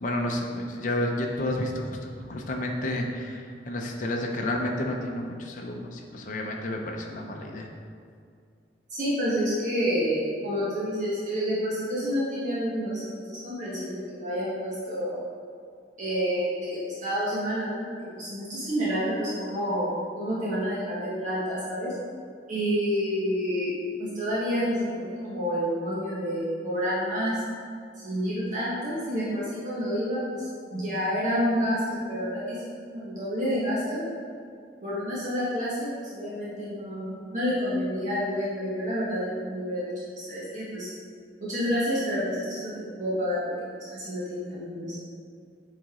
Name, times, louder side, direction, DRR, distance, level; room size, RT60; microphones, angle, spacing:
voice 1, 0.0-7.7, left 1 dB, 45° left, 0 dB, 0.6 m, -31 dB
voice 2, 8.9-15.2 16.0-21.9 22.5-27.4 27.9-34.0 34.8-40.9 41.4-45.0, equal, 45° right, -9 dB, 1.4 m, -29 dB
7.8 x 4.1 x 3.7 m, 2.3 s
head